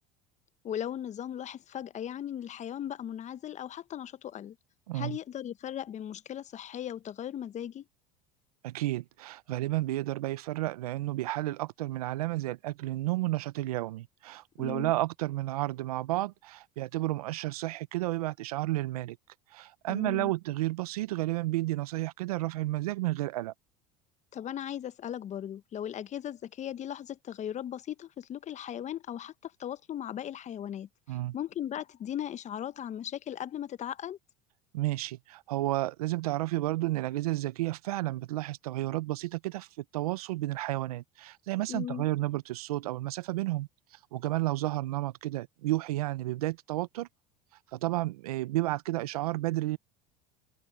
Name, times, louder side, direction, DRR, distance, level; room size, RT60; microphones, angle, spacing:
voice 1, 0.6-4.6 4.9-7.9 14.6-14.9 19.9-20.3 24.3-34.2 41.7-42.1, left 10 dB, 40° left, 1.0 m, -38 dB
voice 2, 4.9-5.2 8.6-19.2 19.5-23.5 31.1-31.3 34.7-39.7 39.9-43.7 44.1-47.1 47.7-49.8, right 17 dB, 85° right, 0.8 m, -31 dB
open air
hypercardioid pair, 85°, 19 cm